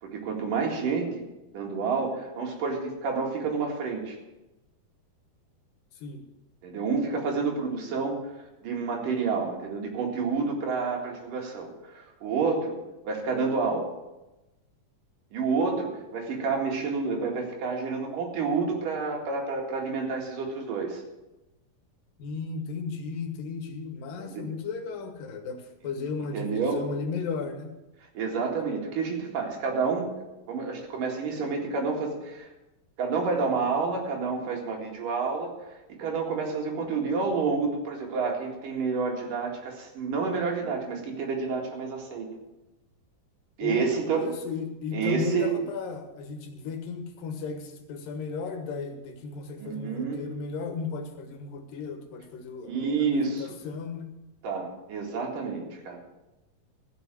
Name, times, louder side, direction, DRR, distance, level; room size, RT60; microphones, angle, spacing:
voice 1, 0.0-1.2 1.5-4.2 6.6-12.8 13.1-13.9 15.3-21.0 24.2-24.4 26.3-26.8 28.0-30.1 30.5-32.5 33.0-42.3 43.6-44.3 44.9-45.6 49.6-50.2 52.6-53.6 54.4-56.0, right 4 dB, 70° right, 0 dB, 3.7 m, -29 dB
voice 2, 22.2-27.7 43.6-54.1, left 5 dB, 75° left, 5 dB, 3.0 m, -35 dB
15.0 x 6.5 x 7.5 m, 1.0 s
omnidirectional pair, 4.0 m